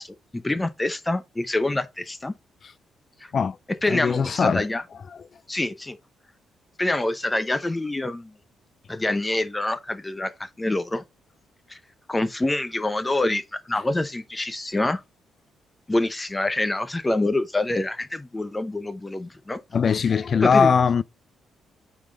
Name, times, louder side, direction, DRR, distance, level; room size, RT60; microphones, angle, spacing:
voice 1, 0.0-2.3 3.2-3.3 3.8-4.8 5.5-6.0 6.8-8.3 8.9-11.0 11.7-11.8 12.1-15.0 15.9-19.6 20.1-20.2 20.4-20.7, left 2 dB, 15° left, 0.7 m, -26 dB
voice 2, 3.9-4.6 19.7-21.0, left 6 dB, 45° left, 0.3 m, -20 dB
8.9 x 3.8 x 3.8 m
cardioid pair, 90°, 0 cm